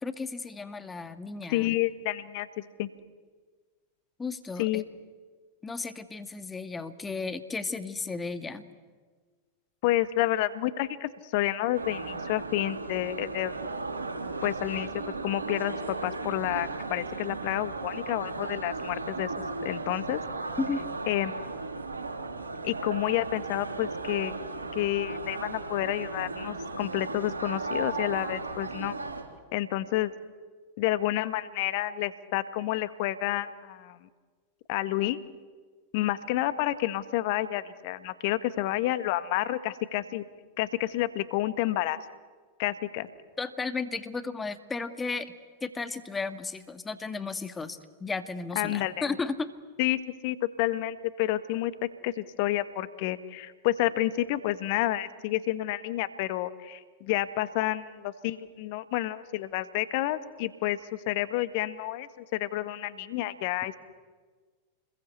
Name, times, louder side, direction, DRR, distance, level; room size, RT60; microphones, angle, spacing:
voice 1, 0.0-1.7 4.2-4.8 5.6-8.6 20.6-20.8 43.4-45.3 45.6-49.5, left 4 dB, 15° left, 10 dB, 2.1 m, -34 dB
voice 2, 1.5-2.9 4.6-4.9 9.8-13.6 14.4-20.2 21.1-21.5 22.6-24.3 24.7-28.9 29.5-30.1 30.8-34.1 34.7-35.2 35.9-40.2 40.6-42.0 42.6-43.1 48.5-49.0 49.8-60.8 61.1-63.7, left 15 dB, 50° left, 13 dB, 1.6 m, -29 dB
sound 1, 11.7-29.2, right 3 dB, 80° right, 3.8 m, -36 dB
29.0 x 21.5 x 8.3 m, 1.5 s
figure-of-eight pair, 90°, 0 cm